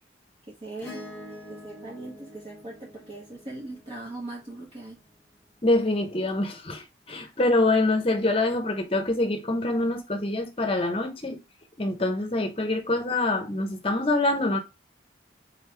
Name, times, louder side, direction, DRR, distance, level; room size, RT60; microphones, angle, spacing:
voice 1, 0.5-1.1 1.5-5.0, right 2 dB, 30° right, 1.0 m, -40 dB
Acoustic guitar / Strum, 0.8-5.4 7.3-7.4, left 1 dB, 10° left, 1.1 m, -46 dB
voice 2, 5.6-11.4 11.8-14.6, left 2 dB, 30° left, 0.8 m, -25 dB
4.0 x 3.3 x 3.3 m
head